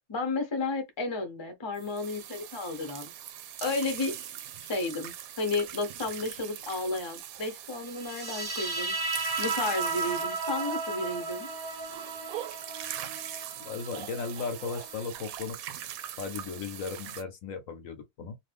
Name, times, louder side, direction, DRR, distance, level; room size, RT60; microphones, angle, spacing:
voice 1, 0.1-3.1 3.6-4.1 4.6-8.9 9.4-11.5, left 3 dB, 25° left, 0.6 m, -32 dB
sound 1, 1.7-17.2, right 11 dB, 75° right, 1.0 m, -41 dB
sound 2, 8.0-15.0, right 3 dB, 25° right, 0.5 m, -35 dB
voice 2, 13.6-15.6 16.2-18.4, left 5 dB, 70° left, 1.0 m, -36 dB
2.9 x 2.5 x 3.3 m
omnidirectional pair, 1.6 m